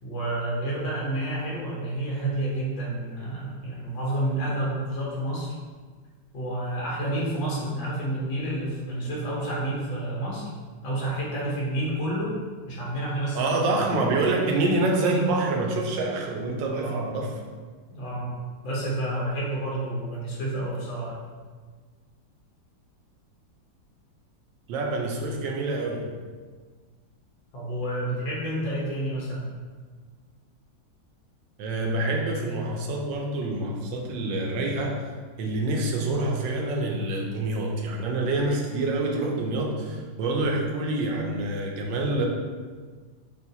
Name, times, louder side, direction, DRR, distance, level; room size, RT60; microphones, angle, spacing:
voice 1, 0.0-5.5 6.3-10.5 10.8-12.3 12.7-13.4 13.8-14.1 14.4-14.5 16.7-17.1 17.9-18.3 18.6-21.2 27.5-29.5, right 1 dB, 85° left, -5 dB, 1.9 m, -29 dB
voice 2, 13.4-17.3 24.7-26.1 31.6-35.0 35.4-42.3, right 2 dB, 80° right, 1 dB, 1.4 m, -26 dB
7.0 x 2.5 x 2.7 m, 1.5 s
omnidirectional pair, 2.0 m